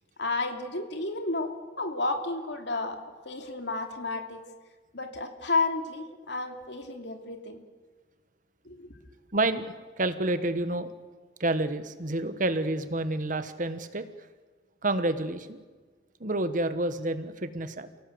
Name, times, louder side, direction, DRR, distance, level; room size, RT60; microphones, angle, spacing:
voice 1, 0.2-4.4 4.9-7.6 8.6-8.9, left 3 dB, 65° left, 5 dB, 2.8 m, -32 dB
voice 2, 9.3-10.9 11.4-14.0 14.8-15.6 16.2-17.9, right 2 dB, 45° right, 11 dB, 1.4 m, -29 dB
29.5 x 17.5 x 8.0 m, 1.4 s
head